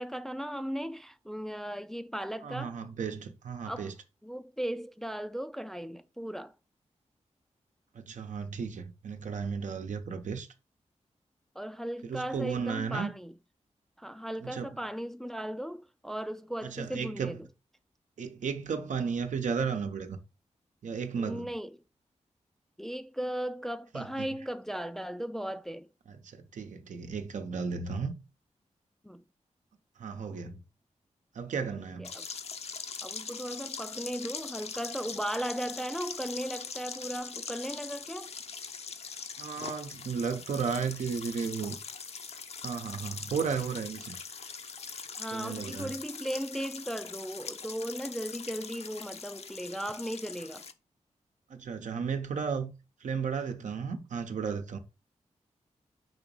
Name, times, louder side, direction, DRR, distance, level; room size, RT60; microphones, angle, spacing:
voice 1, 0.0-2.8 3.6-3.9 4.2-6.5 11.6-13.3 14.0-17.5 21.2-21.8 22.8-25.9 29.0-29.2 31.8-32.3 33.0-38.3 45.2-50.6, equal, 5° left, 0.4 m, -37 dB
voice 2, 2.4-3.9 7.9-10.5 12.0-13.1 14.4-14.8 16.6-17.4 18.2-20.2 20.8-21.5 23.9-24.3 26.1-28.2 30.0-30.6 31.3-32.1 39.4-41.8 42.6-44.2 45.3-45.9 51.5-52.7 53.0-54.8, right 6 dB, 80° right, 0.9 m, -34 dB
sound 1, 32.0-50.7, left 5 dB, 55° left, 0.7 m, -42 dB
5.9 x 3.0 x 5.4 m
wide cardioid pair, 100°, 12 cm